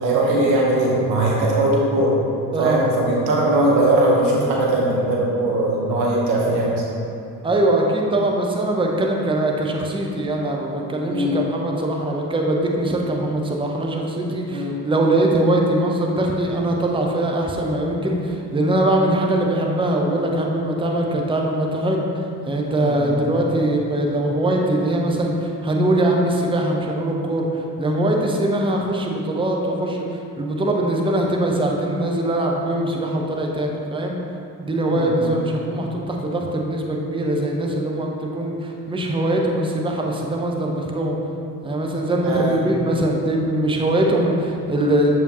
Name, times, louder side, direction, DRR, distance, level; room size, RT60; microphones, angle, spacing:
voice 1, 0.0-2.2 2.6-6.8 11.1-11.4 14.5-14.7 22.7-23.1 34.9-35.3 42.2-42.6, right 1 dB, 80° right, -3 dB, 1.1 m, -20 dB
voice 2, 2.5-2.8 7.4-22.1 22.5-30.1 30.4-34.2 34.6-41.2 41.6-45.1, right 1 dB, 10° right, 0 dB, 0.8 m, -22 dB
6.8 x 4.7 x 3.0 m, 2.6 s
hypercardioid pair, 50°, 50 cm